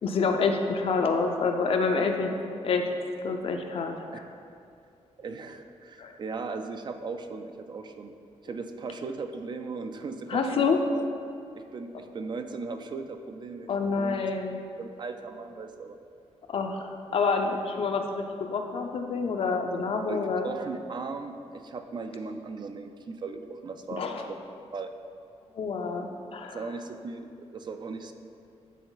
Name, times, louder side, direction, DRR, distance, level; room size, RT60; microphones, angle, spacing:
voice 1, 0.0-2.3 2.6-2.9 3.2-4.2 6.0-6.1 10.3-10.8 13.7-14.6 16.5-20.5 24.0-24.3 25.5-26.6, left 4 dB, 55° left, 4 dB, 0.5 m, -27 dB
voice 2, 5.2-8.1 8.4-10.6 10.9-11.0 11.5-13.7 14.0-14.2 14.8-16.0 17.5-17.6 20.1-24.4 24.7-24.9 26.5-28.1, right 4 dB, 40° right, 7 dB, 0.4 m, -38 dB
9.2 x 3.8 x 3.9 m, 2.5 s
wide cardioid pair, 150°, 12 cm